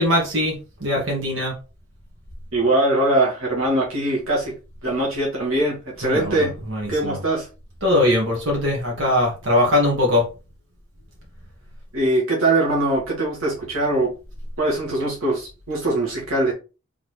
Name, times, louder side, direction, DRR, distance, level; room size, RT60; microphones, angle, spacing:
voice 1, 0.0-1.5 6.0-6.4 6.7-7.2 7.8-10.2, left 1 dB, 60° right, 1.8 m, -21 dB
voice 2, 2.5-4.5 4.8-6.5 6.9-7.5 11.9-14.1 14.6-16.5, right 2 dB, 75° right, 1.8 m, -22 dB
4.0 x 3.6 x 3.2 m
head